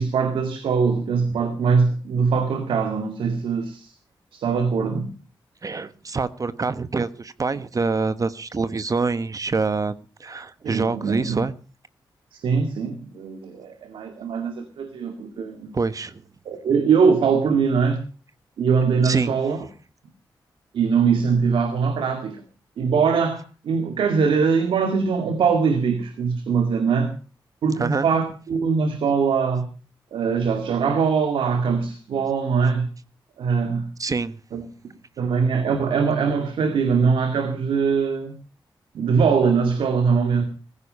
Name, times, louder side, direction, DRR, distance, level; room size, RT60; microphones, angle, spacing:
voice 1, 0.0-3.9 4.3-5.1 10.6-11.4 12.3-15.7 16.5-18.0 18.6-19.6 20.7-22.4 22.8-27.1 27.6-29.7 30.1-32.9 33.4-33.9 34.5-34.6 35.2-38.4 38.9-40.4, right 5 dB, 90° right, 7 dB, 2.2 m, -22 dB
voice 2, 5.6-11.5 15.7-16.2 19.0-19.3 27.8-28.1 34.0-34.4, right 4 dB, 40° right, 13 dB, 1.2 m, -26 dB
16.0 x 15.0 x 5.5 m, 0.37 s
cardioid pair, 70°, 9 cm